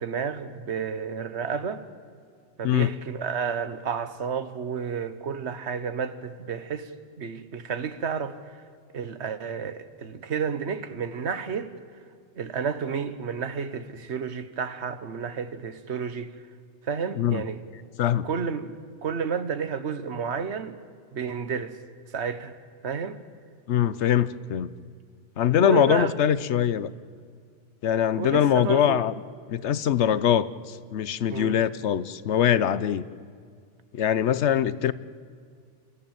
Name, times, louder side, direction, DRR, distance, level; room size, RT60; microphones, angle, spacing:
voice 1, 0.0-1.8 2.6-6.9 7.2-8.4 8.9-11.7 12.3-16.3 16.8-17.6 18.2-18.7 19.0-20.8 21.1-21.8 22.1-22.5 22.8-23.2 25.6-26.1 28.1-29.0 31.3-31.6, right 6 dB, 75° right, 1.4 m, -31 dB
voice 2, 23.7-24.7 25.4-26.9 27.8-29.1 29.5-33.0 33.9-34.9, left 9 dB, 75° left, 1.0 m, -23 dB
27.5 x 15.0 x 8.9 m
omnidirectional pair, 1.2 m